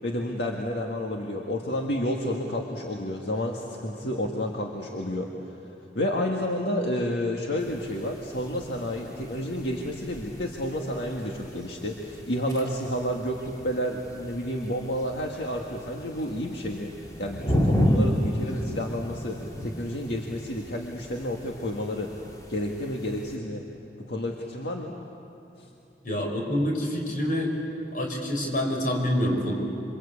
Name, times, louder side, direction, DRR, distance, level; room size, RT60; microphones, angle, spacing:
voice 1, 0.0-5.3 6.0-22.1 22.5-23.7 24.1-25.0 25.6-25.7, left 1 dB, 75° left, 0 dB, 1.9 m, -30 dB
sound 1, 7.6-23.4, equal, 20° left, 2.4 m, -33 dB
voice 2, 26.0-27.5 27.9-29.5, equal, 50° left, 1 dB, 5.5 m, -26 dB
27.5 x 25.0 x 8.5 m, 2.8 s
head